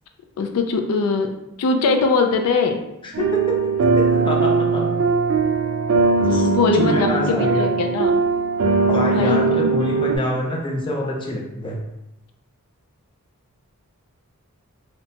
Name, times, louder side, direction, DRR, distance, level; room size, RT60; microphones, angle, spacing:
voice 1, 0.4-1.3 1.6-2.8 6.3-8.2 9.1-9.7, left 4 dB, 90° left, 5 dB, 0.3 m, -21 dB
voice 2, 3.0-3.6 3.9-5.0 6.3-7.7 8.9-11.8, left 1 dB, 20° left, -1 dB, 0.4 m, -26 dB
sound 1, 3.1-10.2, right 4 dB, 60° right, 0.4 m, -20 dB
2.8 x 2.1 x 2.7 m, 0.88 s
head